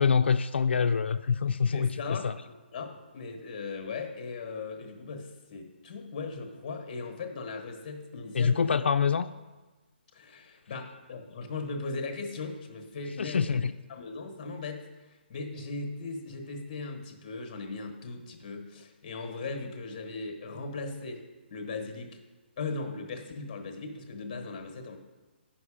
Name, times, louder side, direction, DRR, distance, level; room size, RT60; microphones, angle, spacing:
voice 1, 0.0-2.3 8.3-9.3 13.2-13.7, left 6 dB, 75° left, 8 dB, 0.3 m, -25 dB
voice 2, 1.7-2.3 2.7-8.8 10.1-13.6 13.9-21.2 21.5-22.2 22.6-25.0, left 3 dB, 20° left, 5 dB, 1.1 m, -38 dB
9.2 x 5.9 x 4.9 m, 1.2 s
hypercardioid pair, 180°, 6 cm